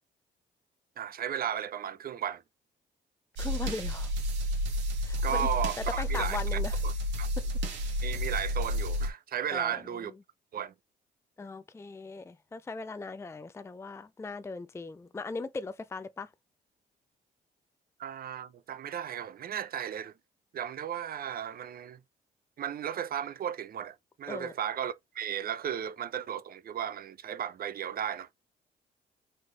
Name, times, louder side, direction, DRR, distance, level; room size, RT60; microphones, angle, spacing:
voice 1, 1.0-2.4 5.2-6.9 7.2-7.3 8.0-10.1 10.5-10.7 18.0-20.1 20.5-22.0 22.6-28.3, right 9 dB, 55° right, 0.7 m, -35 dB
voice 2, 3.4-4.1 5.0-5.5 6.0-6.8 9.5-10.0 11.4-16.3 24.3-24.5, left 3 dB, 15° left, 0.4 m, -39 dB
sound 1, 3.4-9.1, equal, 85° right, 1.6 m, -31 dB
4.2 x 3.2 x 3.2 m
supercardioid pair, 65°, 18 cm